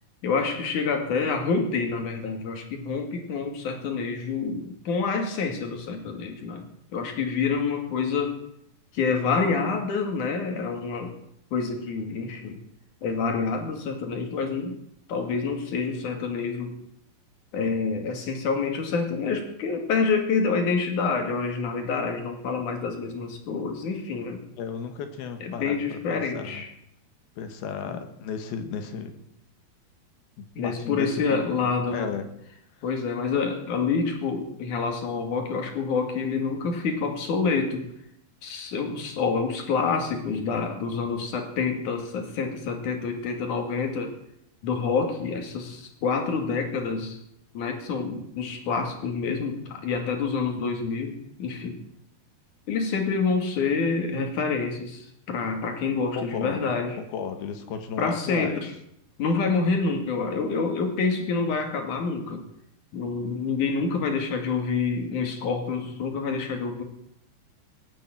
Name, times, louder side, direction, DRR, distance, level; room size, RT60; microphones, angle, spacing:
voice 1, 0.2-6.7 6.9-8.4 8.9-11.1 11.5-12.6 13.0-14.8 15.1-16.8 17.5-24.4 25.4-26.7 27.9-28.0 30.6-32.1 32.8-37.9 38.4-44.1 44.6-47.2 47.5-51.8 52.7-57.0 58.0-58.7 59.2-62.4 62.9-66.8, left 4 dB, 55° left, 4 dB, 3.5 m, -27 dB
voice 2, 24.6-26.6 27.4-29.2 30.4-32.2 56.2-56.7 57.1-58.6, left 6 dB, 80° left, 7 dB, 3.4 m, -34 dB
17.5 x 9.2 x 8.8 m, 0.75 s
omnidirectional pair, 4.4 m